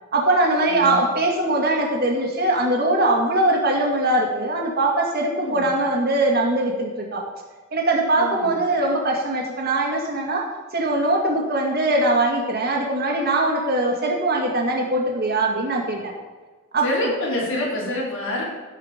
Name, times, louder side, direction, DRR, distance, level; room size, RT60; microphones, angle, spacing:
voice 1, 0.1-7.2 7.7-10.5 10.7-16.1 16.7-17.1, right 2 dB, 50° right, 1 dB, 2.1 m, -21 dB
voice 2, 0.7-1.0 5.4-5.6 8.2-8.5 16.8-18.4, left 1 dB, 75° left, -4 dB, 4.2 m, -27 dB
16.5 x 5.6 x 5.2 m, 1.4 s
head